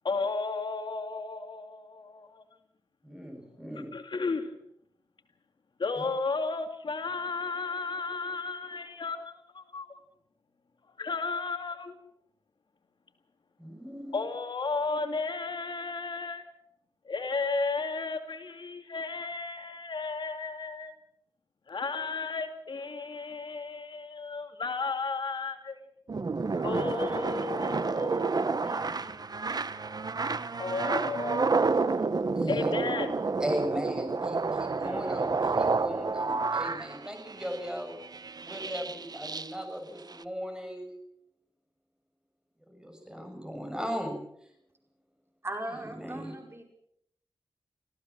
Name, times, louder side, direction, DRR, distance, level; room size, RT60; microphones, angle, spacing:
voice 1, 0.0-2.4 3.9-4.6 5.8-10.0 11.0-11.9 14.1-16.4 17.0-20.9 21.7-25.8 26.6-29.2 30.6-31.6 32.5-33.2, left 4 dB, 65° left, 2.5 m, -34 dB
voice 2, 3.0-3.9 6.0-6.1 13.6-14.2 32.3-32.7 33.4-37.9 38.4-40.9 42.7-44.2 45.9-46.4, equal, 10° right, 7.5 m, -37 dB
sound 1, 26.1-39.5 40.1-40.2, right 4 dB, 50° right, 1.2 m, -30 dB
voice 3, 45.4-46.6, right 1 dB, 30° right, 5.4 m, -38 dB
26.0 x 16.0 x 7.5 m
wide cardioid pair, 75°, 9 cm